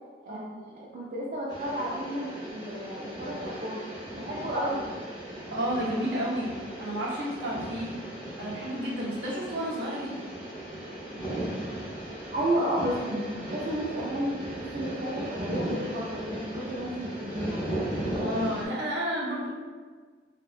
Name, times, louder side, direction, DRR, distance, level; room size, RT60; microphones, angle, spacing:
voice 1, 0.3-3.8 4.1-4.8 12.3-17.6, right 1 dB, 45° right, -6 dB, 0.3 m, -32 dB
sound 1, 1.5-18.7, right 1 dB, 25° left, 0.7 m, -37 dB
voice 2, 5.5-7.9 8.4-10.2 18.1-19.5, equal, 75° right, -6 dB, 0.7 m, -31 dB
2.7 x 2.1 x 2.4 m, 1.5 s
head